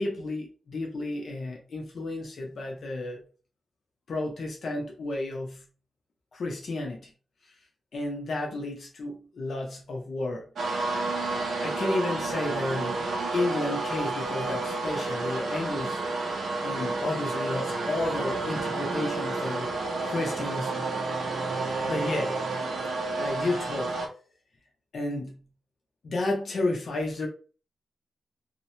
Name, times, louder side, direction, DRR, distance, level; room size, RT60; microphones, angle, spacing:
voice 1, 0.0-3.2 4.1-5.6 6.3-7.1 7.9-10.4 11.3-13.1 13.3-16.0 16.6-19.7 20.0-20.9 21.8-22.4 23.2-23.9 24.9-25.4 26.0-27.3, left 2 dB, 55° left, 0.6 m, -32 dB
sound 1, 10.5-24.1, right 3 dB, 85° right, 0.7 m, -30 dB
2.9 x 2.0 x 2.7 m
wide cardioid pair, 160°, 0 cm